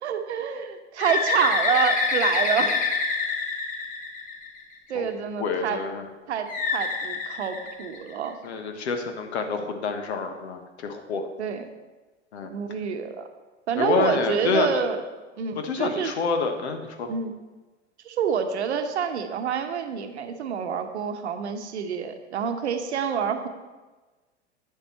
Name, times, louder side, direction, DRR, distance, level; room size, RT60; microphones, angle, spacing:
voice 1, 0.0-2.8 4.9-5.8 6.3-8.4 11.4-11.7 12.4-13.3 13.7-15.0 15.4-16.1 17.1-17.3 18.0-23.5, right 7 dB, 70° right, 7 dB, 1.0 m, -27 dB
Bird, 1.0-4.7 6.5-8.3, left 5 dB, 20° left, 1.3 m, -26 dB
voice 2, 5.4-6.0 8.4-11.3 12.3-12.5 13.8-14.8 15.6-17.1, left 4 dB, 65° left, 6 dB, 1.2 m, -27 dB
9.0 x 6.9 x 4.3 m, 1.2 s
figure-of-eight pair, 90°, 35 cm